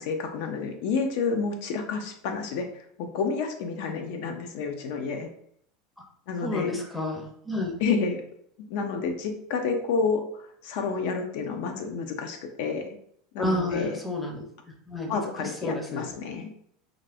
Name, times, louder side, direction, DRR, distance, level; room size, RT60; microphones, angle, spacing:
voice 1, 0.0-5.3 6.3-6.7 7.8-8.2 8.7-12.9 13.3-14.0 15.1-16.5, left 5 dB, 65° left, 5 dB, 0.4 m, -29 dB
voice 2, 6.4-7.7 13.4-16.1, left 1 dB, 5° left, 0 dB, 0.5 m, -31 dB
2.5 x 2.4 x 3.3 m, 0.67 s
supercardioid pair, 145°, 0 cm